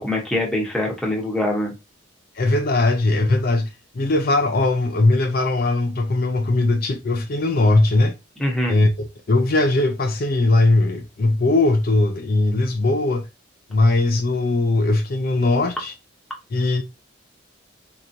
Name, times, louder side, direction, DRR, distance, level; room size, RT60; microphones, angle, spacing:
voice 1, 0.0-1.7 8.4-8.8, left 1 dB, ahead, 1.0 m, -23 dB
voice 2, 2.4-3.7 4.0-8.1 8.7-13.3 13.7-15.9 16.5-16.8, left 2 dB, 45° left, 0.4 m, -19 dB
4.7 x 2.9 x 2.6 m
head